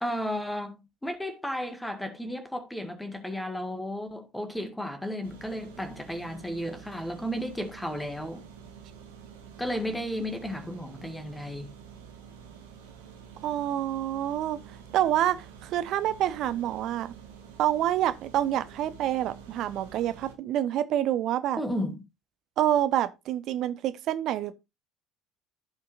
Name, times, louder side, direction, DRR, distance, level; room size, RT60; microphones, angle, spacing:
voice 1, 0.0-8.4 9.6-11.7 21.6-22.0, equal, 5° left, 1.8 m, -33 dB
sound 1, 5.2-20.3, right 7 dB, 70° right, 1.6 m, -48 dB
voice 2, 13.4-14.6 14.9-15.4 15.6-17.1 17.6-21.6 22.6-24.5, right 12 dB, 50° right, 0.8 m, -27 dB
15.0 x 5.6 x 2.5 m
figure-of-eight pair, 60°, 0 cm